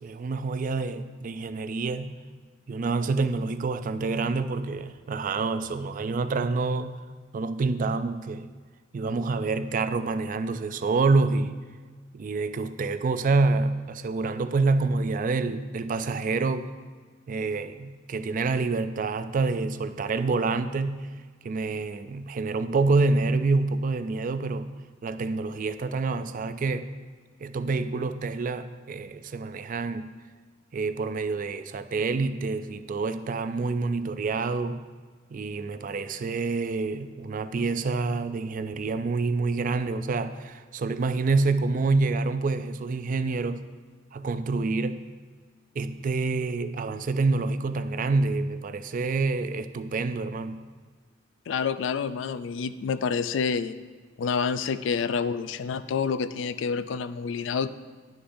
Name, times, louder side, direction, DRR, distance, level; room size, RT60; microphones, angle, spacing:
voice 1, 0.0-2.2 2.7-7.0 7.3-8.5 8.9-11.5 12.1-16.7 17.3-21.1 21.4-24.7 25.0-26.9 27.4-30.1 30.7-34.8 35.3-43.7 44.1-45.0 45.8-50.6, right 3 dB, 45° right, 11 dB, 0.3 m, -27 dB
voice 2, 51.5-53.8 54.2-57.7, left 5 dB, 70° left, 13 dB, 0.3 m, -28 dB
11.0 x 6.8 x 2.6 m, 1.5 s
head